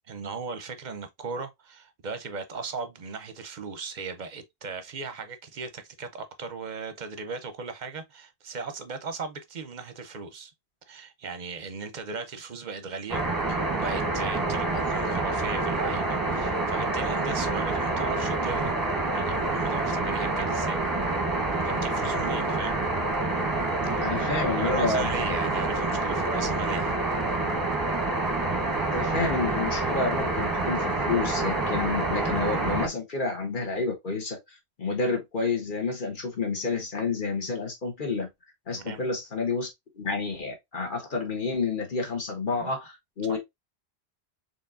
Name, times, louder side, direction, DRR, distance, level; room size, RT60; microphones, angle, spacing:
voice 1, 0.1-10.5 10.9-13.2 13.5-18.7 19.1-20.8 21.6-22.8 23.8-24.1 24.6-27.0 38.7-39.0 42.6-42.7 43.3-43.4, right 4 dB, 55° right, 0.7 m, -37 dB
sound 1, 13.1-32.9, right 2 dB, 20° right, 0.8 m, -27 dB
voice 2, 24.0-25.1 26.4-26.5 28.9-34.4 34.8-38.3 38.7-39.7 39.9-43.4, left 4 dB, 55° left, 1.5 m, -29 dB
4.4 x 3.2 x 2.5 m
omnidirectional pair, 1.1 m